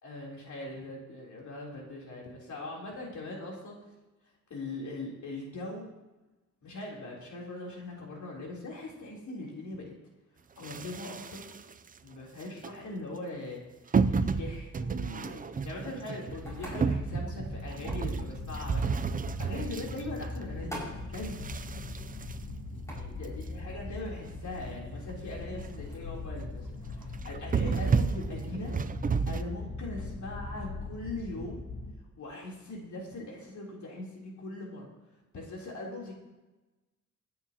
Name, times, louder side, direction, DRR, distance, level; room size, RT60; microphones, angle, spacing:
voice 1, 0.0-3.8 4.5-5.9 6.6-9.9 10.6-11.4 12.0-13.6 14.1-19.0 19.4-21.5 22.9-28.7 29.3-31.6 32.2-34.9 35.3-36.1, left 2 dB, 70° left, -3 dB, 3.5 m, -41 dB
sound 1, 10.6-11.9 12.4-12.7 13.9-20.7 21.1-23.3 23.8-23.9 24.0-24.1 24.6-24.7 25.0-25.2 25.5-25.9 26.3-26.5 27.1-29.4, right 5 dB, 30° right, 0.4 m, -32 dB
sound 2, 15.7-27.8, right 1 dB, 10° left, 5.6 m, -51 dB
sound 3, 16.3-31.9, left 2 dB, 85° left, 2.4 m, -41 dB
25.5 x 9.5 x 2.9 m, 1.1 s
wide cardioid pair, 175°, 30 cm